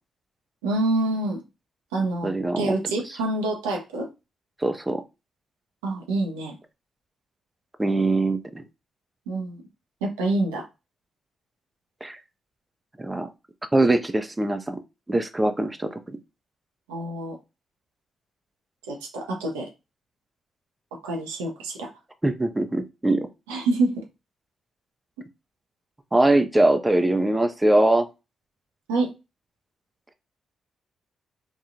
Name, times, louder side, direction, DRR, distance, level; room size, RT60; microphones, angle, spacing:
voice 1, 0.6-1.4 1.9-4.1 5.8-6.6 9.3-9.6 10.0-10.7 16.9-17.4 18.9-19.7 21.0-21.9 23.5-24.0 28.9-29.1, right 2 dB, 90° right, 0.5 m, -26 dB
voice 2, 2.2-2.7 3.1-3.2 4.6-5.0 7.8-8.6 12.0-12.2 13.0-13.3 13.7-14.8 15.1-16.2 22.2-23.3 26.1-28.1, right 2 dB, 20° right, 0.4 m, -22 dB
3.0 x 2.3 x 2.5 m
hypercardioid pair, 40°, 0 cm